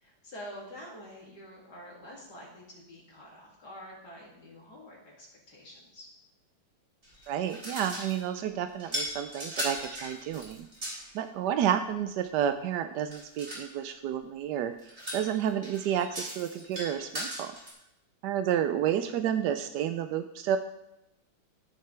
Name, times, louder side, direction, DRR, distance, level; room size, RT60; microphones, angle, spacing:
voice 1, 0.0-6.1, equal, 50° left, -3 dB, 3.2 m, -47 dB
sound 1, 7.0-8.3 8.8-11.1 13.1-13.7 14.8-17.7, equal, 30° right, 3.5 m, -38 dB
voice 2, 7.3-10.7 11.1-14.7 15.1-17.5 18.2-20.6, right 9 dB, 80° right, 9 dB, 0.9 m, -30 dB
15.0 x 6.6 x 3.3 m, 0.88 s
omnidirectional pair, 2.3 m